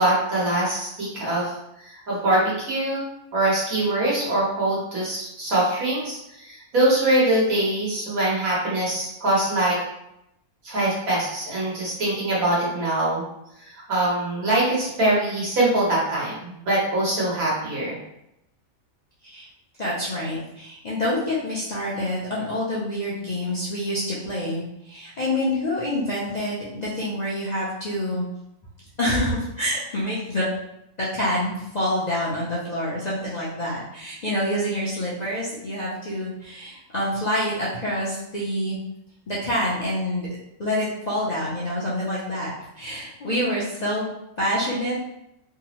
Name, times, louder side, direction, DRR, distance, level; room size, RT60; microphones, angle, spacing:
voice 1, 0.0-1.5 1.8-3.0 3.3-9.8 10.6-13.2 13.6-18.0 43.3-43.4, right 1 dB, 90° right, -6 dB, 1.7 m, -23 dB
voice 2, 19.8-28.2 29.0-30.5 31.0-38.8 39.3-40.3 40.6-44.0 44.4-45.0, left 1 dB, 50° left, -7 dB, 0.5 m, -27 dB
3.5 x 2.0 x 2.9 m, 0.82 s
omnidirectional pair, 1.4 m